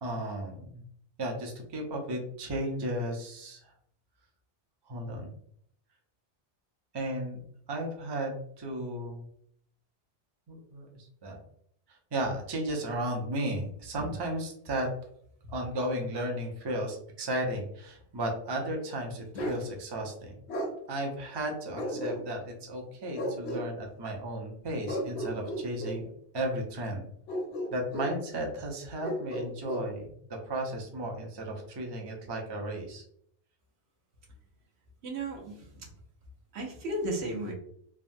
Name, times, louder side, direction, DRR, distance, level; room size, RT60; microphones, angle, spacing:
voice 1, 0.0-0.8 1.2-3.7 4.9-5.3 6.9-7.4 7.7-9.3 10.5-11.4 11.9-14.9 15.5-20.3 20.9-26.0 26.3-27.1 27.7-30.1 30.5-33.0, right 1 dB, 35° right, 1 dB, 0.4 m, -34 dB
Bark, 19.3-19.6 20.5-20.7 21.8-22.5 23.1-23.7 24.9-26.0 27.3-28.2 29.0-29.9, equal, 75° left, 0.9 m, -34 dB
voice 2, 35.0-35.9 36.5-37.5, right 1 dB, 70° right, 0 dB, 1.0 m, -35 dB
3.4 x 2.1 x 2.5 m, 0.67 s
omnidirectional pair, 1.2 m